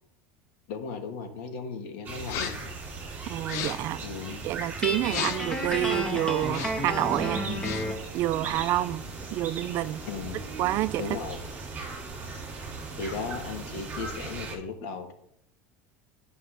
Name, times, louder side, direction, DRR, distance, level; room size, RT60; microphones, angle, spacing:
voice 1, 0.7-2.5 4.0-4.4 10.1-10.4 11.0-11.4 13.0-15.1, left 4 dB, 70° left, 1.4 m, -36 dB
sound 1, 2.0-14.5, right 3 dB, 25° right, 2.4 m, -38 dB
sound 2, 2.2-2.7 3.4-4.0 5.0-5.6 6.4-6.9 7.4-8.0, left 11 dB, 50° left, 0.5 m, -36 dB
voice 2, 3.3-4.0 4.4-7.5 8.1-9.0 9.3-10.0 10.6-11.0, right 14 dB, 45° right, 0.3 m, -28 dB
Guitar, 4.8-8.1, equal, 10° left, 1.0 m, -31 dB
11.0 x 5.4 x 3.3 m
supercardioid pair, 150°, 6 cm